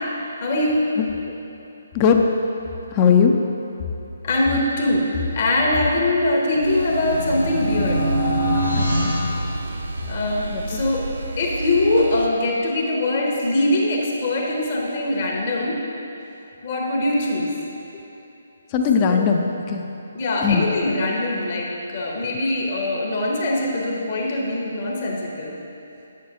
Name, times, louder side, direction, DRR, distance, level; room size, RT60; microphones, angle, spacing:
voice 1, 0.4-0.8 4.2-8.0 10.1-11.1 11.4-15.8 16.6-17.5 18.9-19.2 20.1-25.5, left 1 dB, 45° left, -2 dB, 0.9 m, -22 dB
voice 2, 2.9-3.3 8.8-9.1 10.5-10.8 18.7-19.9 20.4-20.7, left 6 dB, 25° left, 3 dB, 0.4 m, -19 dB
sound 1, 6.4-10.3, equal, 85° right, 1.3 m, -24 dB
sound 2, 6.6-12.3, right 2 dB, 55° right, 0.6 m, -31 dB
8.4 x 6.4 x 2.8 m, 2.9 s
figure-of-eight pair, 140°, 0 cm